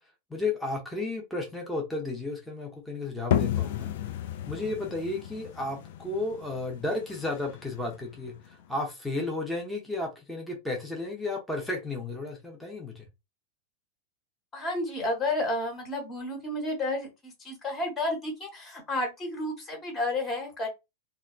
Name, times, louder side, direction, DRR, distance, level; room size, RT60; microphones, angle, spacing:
voice 1, 0.3-3.9 4.5-13.0, left 2 dB, 5° left, 0.8 m, -33 dB
sound 1, 3.3-8.8, left 10 dB, 55° left, 0.3 m, -33 dB
voice 2, 14.5-20.7, left 2 dB, 20° left, 1.3 m, -31 dB
3.3 x 2.3 x 2.3 m
figure-of-eight pair, 90°, 0 cm